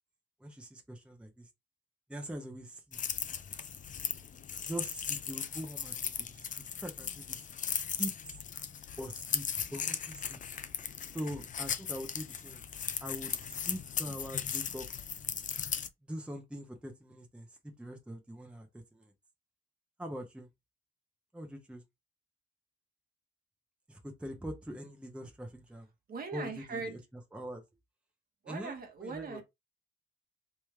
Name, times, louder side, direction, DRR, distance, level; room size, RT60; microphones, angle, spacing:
voice 1, 0.4-1.5 2.1-3.0 4.6-7.4 8.0-8.4 9.0-10.4 11.1-12.6 13.0-14.9 16.0-19.1 20.0-20.5 21.3-21.8 23.9-25.9 26.3-27.6 28.5-29.4, equal, 5° right, 0.9 m, -43 dB
sound 1, 2.9-15.9, left 7 dB, 40° left, 0.5 m, -37 dB
voice 2, 26.1-27.0 28.4-29.4, right 4 dB, 50° right, 1.2 m, -40 dB
3.3 x 3.0 x 3.4 m
cardioid pair, 90°, 20 cm